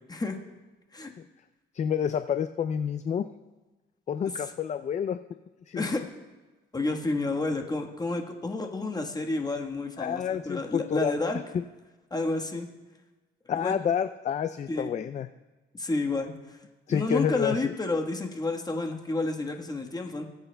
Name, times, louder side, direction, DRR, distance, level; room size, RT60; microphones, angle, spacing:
voice 1, 1.7-3.3 4.1-5.2 5.7-5.8 10.0-11.1 11.5-11.6 13.5-15.3 16.9-17.7, left 8 dB, 35° left, 11 dB, 0.4 m, -28 dB
voice 2, 6.7-11.4 12.1-12.7 13.5-13.7 14.7-14.9 15.7-16.6 16.9-20.2, left 2 dB, 20° left, 2 dB, 1.3 m, -30 dB
18.5 x 8.1 x 2.2 m, 1.2 s
cardioid pair, 90°, 20 cm